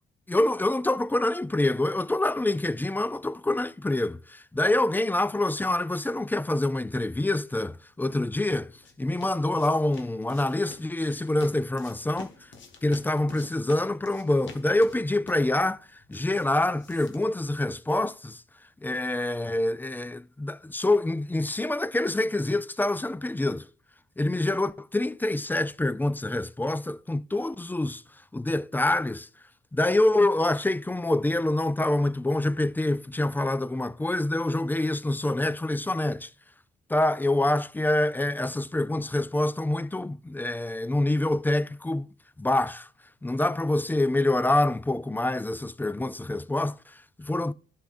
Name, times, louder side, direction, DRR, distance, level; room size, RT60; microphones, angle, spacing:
voice 1, 0.3-8.7 9.0-12.3 12.8-18.4 18.8-23.7 24.2-28.0 28.3-29.3 29.7-36.3 36.9-42.1 42.4-42.9 43.2-47.5, left 2 dB, 10° left, 0.3 m, -26 dB
sound 1, 8.1-18.1, left 5 dB, 70° left, 1.7 m, -49 dB
11.5 x 6.1 x 2.5 m
cardioid pair, 90°, 20 cm